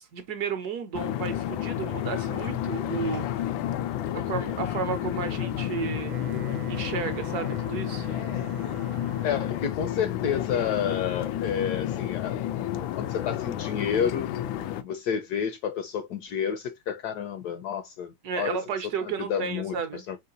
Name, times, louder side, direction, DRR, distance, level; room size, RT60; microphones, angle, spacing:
voice 1, 0.1-3.5 3.8-3.9 4.1-6.2 6.7-8.1 18.2-20.0, right 6 dB, 65° right, 1.1 m, -33 dB
sound 1, 0.9-14.8, left 12 dB, 90° left, 1.3 m, -31 dB
Wind instrument woodwind instrument, 5.9-9.8, right 13 dB, 90° right, 1.4 m, -45 dB
voice 2, 9.2-12.4 12.7-14.3 14.8-18.6 19.0-20.2, left 8 dB, 70° left, 1.0 m, -30 dB
4.4 x 3.7 x 2.6 m
omnidirectional pair, 2.1 m